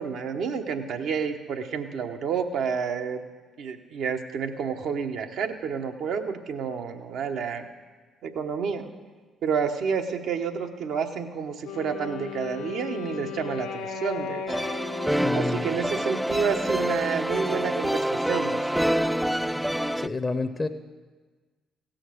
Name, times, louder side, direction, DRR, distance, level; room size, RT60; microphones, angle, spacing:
voice 1, 0.0-3.2 3.6-7.6 8.2-8.9 9.4-14.4 15.3-19.2, right 6 dB, 70° right, 5 dB, 1.0 m, -29 dB
Wind instrument woodwind instrument, 11.6-16.7, left 8 dB, 85° left, 1.3 m, -37 dB
sound 1, 14.5-20.1, equal, 5° right, 0.3 m, -26 dB
voice 2, 15.2-15.7 20.0-20.7, left 3 dB, 25° left, 9 dB, 0.7 m, -29 dB
16.5 x 6.3 x 6.4 m, 1.4 s
hypercardioid pair, 45°, 0 cm